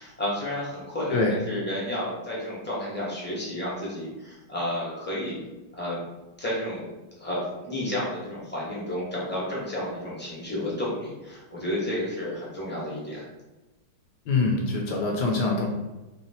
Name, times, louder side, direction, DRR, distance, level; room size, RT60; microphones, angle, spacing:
voice 1, 0.0-5.4 5.7-6.0 6.4-6.9 7.2-13.3, left 1 dB, 10° left, -7 dB, 0.6 m, -31 dB
voice 2, 14.3-15.7, left 3 dB, 70° left, 0 dB, 1.1 m, -24 dB
3.2 x 2.9 x 4.2 m, 1.1 s
omnidirectional pair, 2.2 m